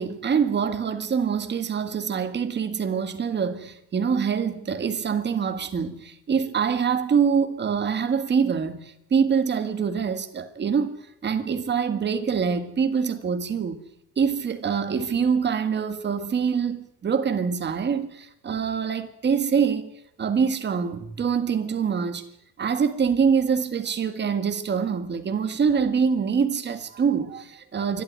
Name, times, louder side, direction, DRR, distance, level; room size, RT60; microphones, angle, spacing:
voice 1, 0.0-11.0 11.2-13.8 14.2-19.9 20.2-22.2 22.6-28.0, right 6 dB, 25° right, 1.7 m, -25 dB
27.5 x 12.5 x 9.5 m
cardioid pair, 165°, 40 cm